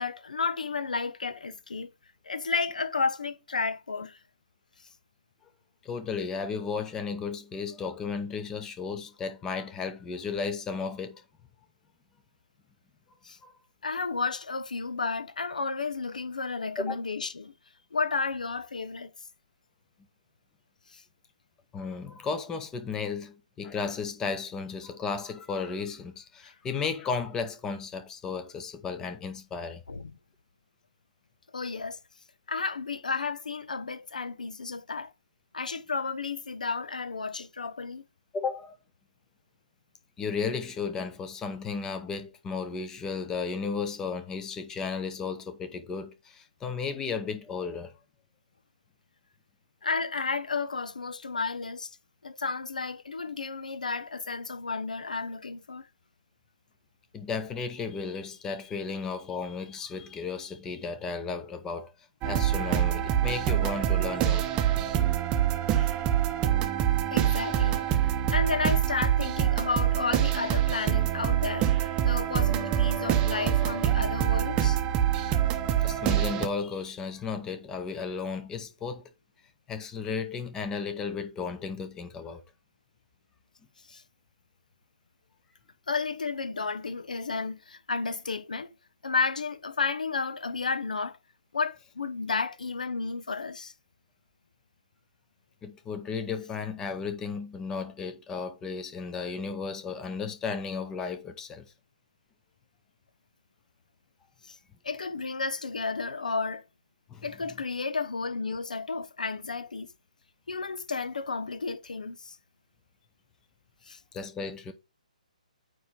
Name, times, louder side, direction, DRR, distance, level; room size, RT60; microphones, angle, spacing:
voice 1, 0.0-1.9 2.2-4.2 13.2-13.4 13.8-17.5 17.9-19.1 20.9-21.0 26.4-26.5 29.9-30.1 31.5-32.0 32.5-35.1 35.5-38.0 49.8-52.0 52.2-55.9 67.1-67.8 68.3-71.7 72.0-74.8 83.9-84.0 85.9-88.7 89.0-91.2 91.5-93.7 104.5-104.6 104.8-106.6 107.2-109.9 110.5-112.4 113.9-114.0, left 4 dB, 70° left, 0.9 m, -32 dB
voice 2, 5.8-11.2 13.4-13.5 16.8-17.0 21.7-29.8 38.3-38.7 40.2-48.0 57.1-61.9 62.2-64.5 75.8-79.0 79.7-82.4 95.6-101.6 107.1-107.3 114.1-114.7, left 5 dB, 15° left, 0.7 m, -34 dB
sound 1, 62.2-76.5, right 11 dB, 20° right, 0.7 m, -25 dB
9.2 x 3.1 x 5.1 m
figure-of-eight pair, 130°, 4 cm